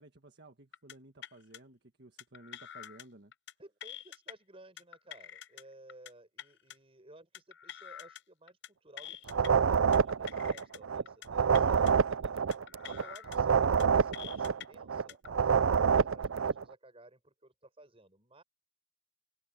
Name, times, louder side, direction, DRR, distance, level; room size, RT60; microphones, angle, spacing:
voice 1, 0.0-3.3 11.5-11.8, right 2 dB, 55° right, 1.6 m, -54 dB
sound 1, 0.7-0.9 1.2-1.6 2.2-3.0 3.3-3.5 3.8-4.3 4.8-5.6 5.9-6.1 6.4-6.8 7.3-8.2 8.5-8.7 9.0-9.5 9.9-10.8 11.1-11.3 11.5-11.9 12.5-13.4 13.6-13.8 14.1-14.7 15.1-15.3, left 10 dB, 55° left, 0.7 m, -46 dB
voice 2, 3.6-11.9 12.2-12.4 12.8-18.4, right 1 dB, 25° right, 6.0 m, -56 dB
sound 2, 9.3-11.0 11.3-15.0 15.3-16.6, right 6 dB, 70° right, 0.5 m, -27 dB
head